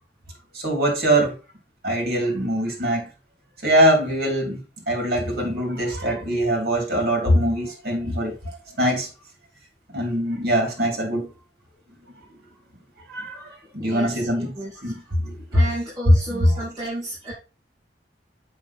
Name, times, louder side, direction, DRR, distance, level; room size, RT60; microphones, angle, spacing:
voice 1, 0.5-1.4 1.8-3.1 3.6-8.4 8.8-9.1 9.9-11.3 13.1-14.5 14.8-15.6 16.3-16.4, right 1 dB, 55° right, 2.7 m, -23 dB
voice 2, 13.8-14.3 14.6-14.7 15.5-17.3, right 1 dB, 20° right, 2.8 m, -32 dB
7.1 x 5.1 x 4.3 m
head